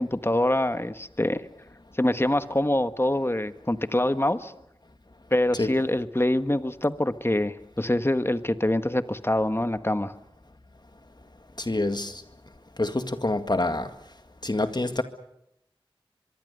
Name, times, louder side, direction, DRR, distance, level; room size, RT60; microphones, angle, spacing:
voice 1, 0.0-1.4 2.0-4.5 5.3-10.1, left 1 dB, 25° left, 11 dB, 1.3 m, -25 dB
voice 2, 11.6-12.2 12.8-13.9 14.4-15.0, left 2 dB, 50° left, 8 dB, 1.9 m, -26 dB
24.0 x 23.5 x 6.8 m, 0.82 s
wide cardioid pair, 40°, 9 cm